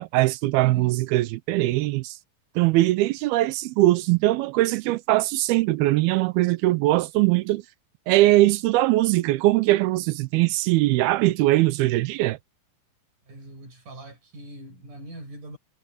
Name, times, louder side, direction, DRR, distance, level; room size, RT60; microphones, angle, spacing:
voice 1, 0.0-2.2 2.6-7.6 8.1-12.4, right 17 dB, 85° right, 2.5 m, -21 dB
voice 2, 0.6-0.9 13.3-15.6, right 1 dB, 50° right, 9.5 m, -41 dB
omnidirectional pair, 4.5 m